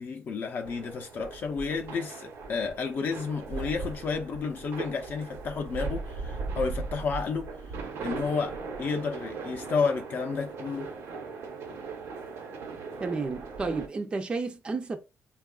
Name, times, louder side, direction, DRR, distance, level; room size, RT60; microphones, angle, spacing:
voice 1, 0.0-10.9, left 5 dB, 45° left, 0.5 m, -31 dB
sound 1, 0.7-13.9, right 4 dB, 85° right, 0.9 m, -38 dB
voice 2, 13.0-15.0, right 4 dB, 20° right, 0.4 m, -31 dB
3.5 x 2.3 x 2.3 m
cardioid pair, 150°, 4 cm